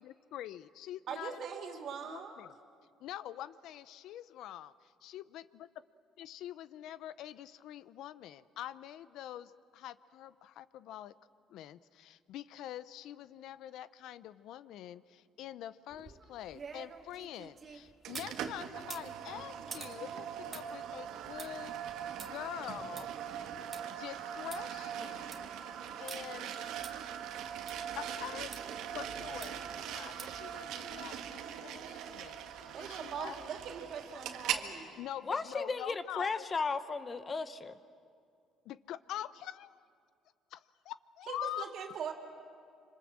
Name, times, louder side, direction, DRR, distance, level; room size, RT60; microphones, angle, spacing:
voice 1, 0.0-1.4 1.8-2.5 3.0-5.7 6.2-11.1 11.5-21.8 22.2-23.1 23.9-25.5 26.0-26.6 28.0-28.5 28.8-33.4 35.0-36.4 38.6-39.8 40.5-41.7, left 12 dB, 70° left, 16 dB, 0.6 m, -45 dB
voice 2, 1.1-2.3 32.7-35.0 41.3-42.1, right 7 dB, 55° right, 4 dB, 3.1 m, -41 dB
sound 1, 15.9-18.4 18.8-23.8 24.2-24.3 24.5-24.6 25.1-25.5 26.1-26.2 26.8-26.9 27.7-27.8 28.5-28.6 29.4-29.7 30.2-30.5 30.9-31.0, right 5 dB, 35° right, 1.7 m, -49 dB
sound 2, 18.0-34.7, right 9 dB, 75° right, 1.6 m, -41 dB
voice 3, 35.3-37.7, left 4 dB, 25° left, 12 dB, 0.9 m, -35 dB
26.0 x 26.0 x 7.5 m, 2.3 s
cardioid pair, 125°, 0 cm